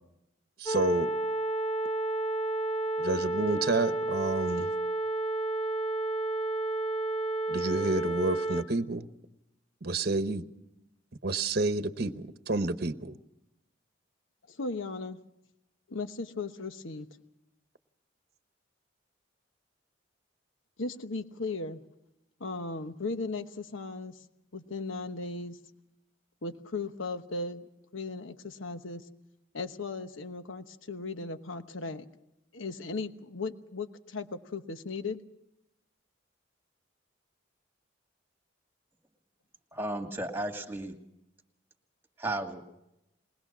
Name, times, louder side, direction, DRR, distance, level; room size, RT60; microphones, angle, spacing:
voice 1, 0.6-1.1 3.0-4.7 7.5-9.1 9.8-10.5 11.2-13.2, right 2 dB, 50° right, 10 dB, 0.9 m, -29 dB
sound 1, 0.7-8.6, right 2 dB, 25° left, 1.1 m, -31 dB
voice 2, 14.5-15.2 15.9-17.1 20.8-21.8 22.4-24.2 24.5-25.6 26.4-27.6 27.9-29.0 29.5-32.0 32.5-35.2, left 3 dB, 90° left, 9 dB, 1.1 m, -37 dB
voice 3, 39.7-41.0 42.2-42.6, right 1 dB, 10° right, 4 dB, 2.1 m, -34 dB
21.5 x 20.0 x 6.1 m, 0.86 s
head